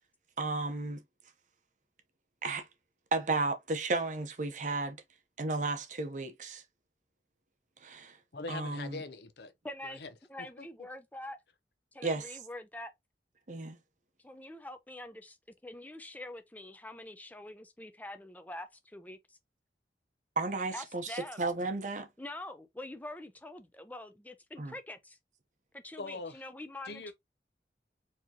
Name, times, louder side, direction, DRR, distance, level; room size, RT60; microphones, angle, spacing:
voice 1, 0.4-1.0 2.4-2.7 3.1-5.0 5.4-6.6 7.8-8.2 8.5-9.0 12.0-12.4 13.5-13.8 20.4-22.1 24.6-24.7, right 3 dB, 45° right, 0.7 m, -33 dB
voice 2, 8.3-9.5 9.8-10.1 10.4-10.7 26.0-26.4 26.9-27.1, left 3 dB, 70° left, 0.7 m, -42 dB
voice 3, 9.6-10.0 10.3-11.4 11.9-12.9 14.2-15.4 15.6-19.4 20.7-21.5 22.2-25.2 25.7-27.1, left 1 dB, 10° left, 0.5 m, -45 dB
4.6 x 2.9 x 2.8 m
head